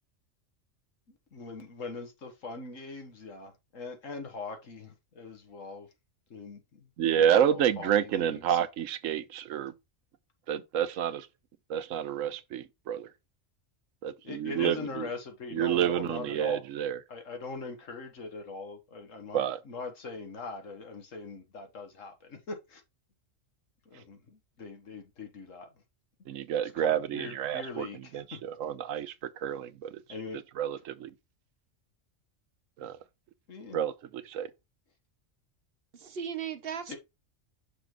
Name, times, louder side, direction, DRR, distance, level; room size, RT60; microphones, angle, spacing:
voice 1, 1.1-5.9 6.3-6.9 7.2-8.7 14.2-16.6 17.1-22.8 23.9-25.7 26.8-28.4 30.1-30.4 33.5-33.8 36.9-37.0, left 4 dB, 85° left, 1.9 m, -41 dB
voice 2, 7.0-9.7 10.5-11.3 11.7-13.1 14.0-15.1 15.5-17.0 19.3-19.6 26.3-27.9 28.1-30.0 30.6-31.1 32.8-33.0 33.7-34.5, right 9 dB, 90° right, 1.0 m, -29 dB
voice 3, 35.9-37.0, right 8 dB, 55° right, 0.9 m, -36 dB
6.0 x 3.9 x 4.6 m
omnidirectional pair, 1.3 m